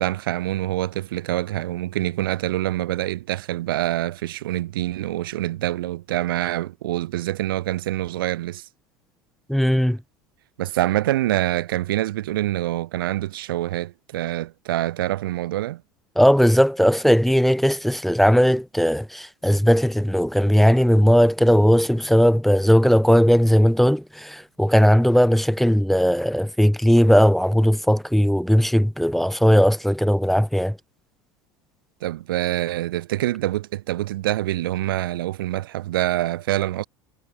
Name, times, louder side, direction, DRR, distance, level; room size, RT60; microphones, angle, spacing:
voice 1, 0.0-8.7 10.6-15.8 32.0-36.8, right 15 dB, 85° right, 0.6 m, -25 dB
voice 2, 9.5-10.0 16.2-30.8, equal, ahead, 1.0 m, -18 dB
hypercardioid pair, 85°, 11 cm